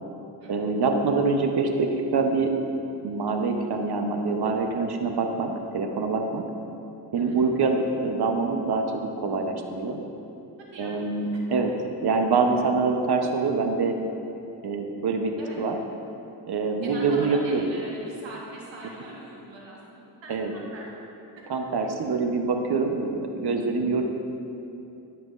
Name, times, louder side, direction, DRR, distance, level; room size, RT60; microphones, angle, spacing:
voice 1, 0.5-2.5 3.0-6.4 7.1-10.0 10.8-11.7 12.0-13.9 14.6-15.3 15.6-15.8 16.5-17.7 20.3-20.5 21.5-24.0, right 4 dB, 60° right, 4 dB, 0.9 m, -25 dB
voice 2, 10.6-10.9 11.3-11.6 15.4-15.6 16.8-20.9 21.4-21.5, right 2 dB, 80° right, -3 dB, 1.5 m, -42 dB
11.0 x 5.9 x 2.5 m, 2.8 s
cardioid pair, 50°, 44 cm